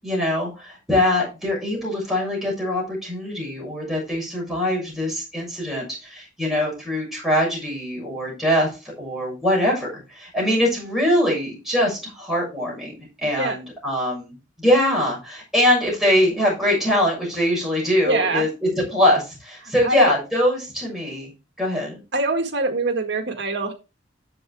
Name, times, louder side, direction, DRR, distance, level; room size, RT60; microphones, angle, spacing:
voice 1, 0.0-8.7 9.0-12.9 13.2-21.3 21.6-22.0, left 1 dB, ahead, -3 dB, 6.5 m, -22 dB
voice 2, 18.1-18.4 19.8-20.1 22.1-23.7, right 2 dB, 65° right, 5 dB, 1.8 m, -23 dB
11.0 x 7.8 x 3.5 m, 0.29 s
head